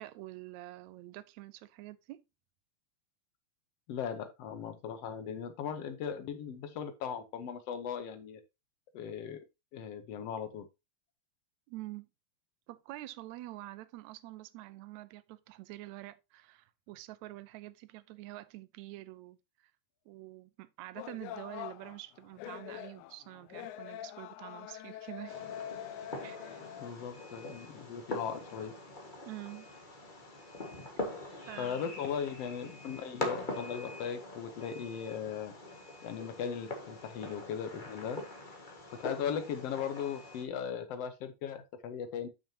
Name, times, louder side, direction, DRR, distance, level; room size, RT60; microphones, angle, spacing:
voice 1, 0.0-2.2 11.7-12.1 12.7-19.7 20.1-25.4 26.2-26.7 29.2-29.7 31.5-31.9, right 17 dB, 80° right, 1.8 m, -47 dB
voice 2, 3.9-8.4 8.9-9.4 9.7-10.7 26.8-28.8 31.6-35.5 36.0-38.2 39.0-42.3, left 7 dB, 65° left, 1.7 m, -38 dB
sound 1, 20.9-26.9, left 11 dB, 80° left, 1.9 m, -44 dB
Fireworks, 25.3-40.4, left 2 dB, 25° left, 1.0 m, -43 dB
8.9 x 6.2 x 2.8 m
omnidirectional pair, 3.7 m